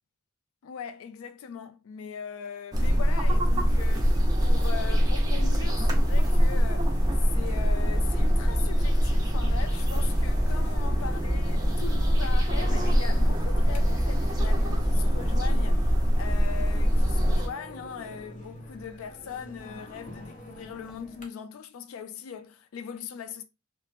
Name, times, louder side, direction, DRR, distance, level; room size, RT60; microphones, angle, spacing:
voice 1, 0.6-4.2 4.4-7.0 7.3-23.4, left 7 dB, 75° left, 0.3 m, -40 dB
sound 1, 2.7-17.5, equal, 20° right, 0.6 m, -23 dB
sound 2, 6.9-21.2, equal, 35° left, 0.8 m, -45 dB
2.9 x 2.0 x 3.1 m
head